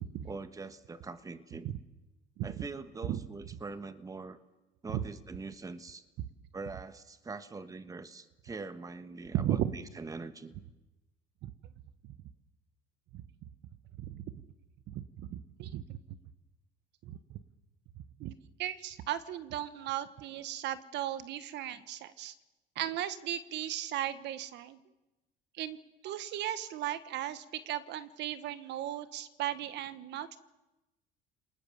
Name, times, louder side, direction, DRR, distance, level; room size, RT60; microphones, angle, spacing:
voice 1, 0.2-1.7 2.4-4.4 4.8-6.0 6.5-10.5, right 3 dB, 15° right, 11 dB, 1.4 m, -43 dB
voice 2, 9.3-9.7 11.4-11.5 13.1-13.2 14.0-14.2 14.9-16.0 17.0-17.2 18.2-22.3 22.7-24.8 25.6-25.8 26.0-30.4, right 12 dB, 65° right, 13 dB, 1.3 m, -36 dB
29.5 x 19.5 x 7.2 m, 1.0 s
cardioid pair, 120°, 20 cm